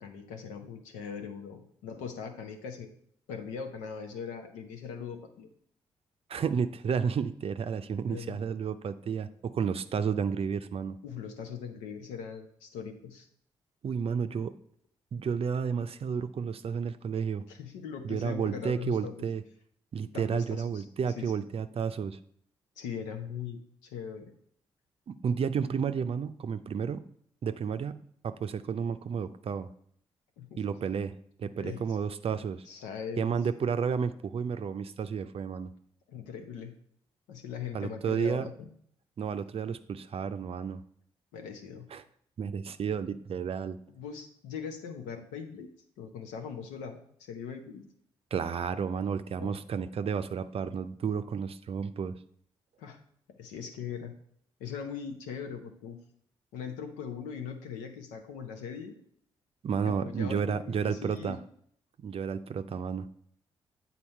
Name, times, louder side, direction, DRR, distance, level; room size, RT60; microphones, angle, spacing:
voice 1, 0.0-2.9 3.3-5.5 8.1-8.4 11.0-13.3 17.5-19.3 20.1-20.8 21.2-21.4 22.8-24.3 30.4-30.6 31.4-32.0 32.7-33.4 36.1-36.7 37.3-38.7 41.3-41.9 43.9-45.7 46.0-47.8 49.4-49.6 52.8-53.0 53.3-54.1 54.6-56.0 56.5-58.9 59.8-61.4, left 6 dB, 80° left, 5 dB, 0.8 m, -40 dB
voice 2, 6.3-11.0 13.8-14.5 15.1-17.5 18.0-19.4 19.9-22.2 25.1-27.0 27.4-29.7 30.6-32.7 33.2-35.7 37.7-38.5 39.2-40.8 41.9-42.0 42.4-43.8 48.3-52.2 59.6-61.4 62.0-63.1, right 6 dB, 50° right, 11 dB, 0.5 m, -31 dB
8.5 x 4.2 x 4.4 m, 0.66 s
hypercardioid pair, 40°, 13 cm